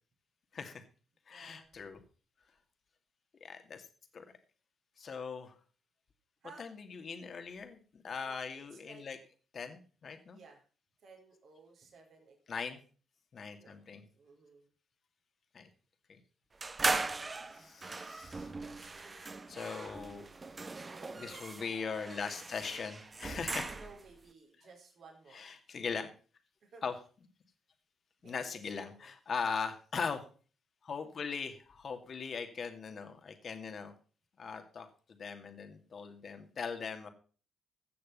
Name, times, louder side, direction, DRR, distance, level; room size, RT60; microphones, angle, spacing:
voice 1, 0.5-0.8 1.3-2.0 3.4-3.9 4.1-4.2 5.0-5.5 6.6-9.2 9.5-10.4 12.5-12.8 13.3-14.0 15.5-15.7 16.1-16.2 17.5-18.5 19.5-20.2 21.1-23.7 25.3-26.1 26.8-26.9 28.2-30.3 30.8-33.9 34.4-37.1, left 5 dB, 55° left, 7 dB, 2.3 m, -40 dB
voice 2, 1.3-1.7 6.4-6.6 8.2-9.0 10.2-10.6 11.0-12.6 13.6-13.8 14.1-14.7 17.5-17.8 18.7-19.9 20.2-20.4 20.9-21.7 21.9-22.1 23.6-25.5 26.6-26.8 28.2-29.1, right 4 dB, 65° right, 2 dB, 4.1 m, -57 dB
sound 1, 16.6-24.1, right 3 dB, 35° right, 1.4 m, -39 dB
16.5 x 6.8 x 5.4 m, 0.39 s
supercardioid pair, 50°, 0 cm